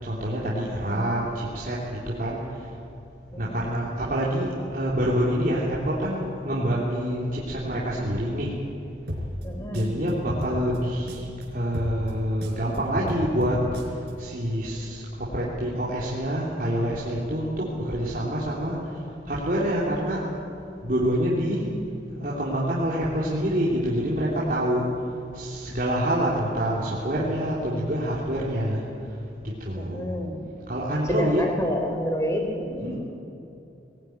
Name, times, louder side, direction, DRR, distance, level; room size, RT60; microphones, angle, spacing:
voice 1, 0.0-2.6 3.4-8.5 9.7-13.6 14.2-18.9 19.3-20.2 20.8-21.7 22.2-24.9 25.3-28.8 29.6-30.1 30.7-31.4 32.8-33.0, equal, 50° right, -6 dB, 3.3 m, -26 dB
sound 1, 9.1-11.4 11.7-14.1, equal, 65° right, 4.6 m, -34 dB
voice 2, 9.4-9.8 29.7-30.4 31.1-32.9, equal, 15° left, 2 dB, 3.7 m, -29 dB
21.0 x 17.5 x 9.6 m, 2.8 s
head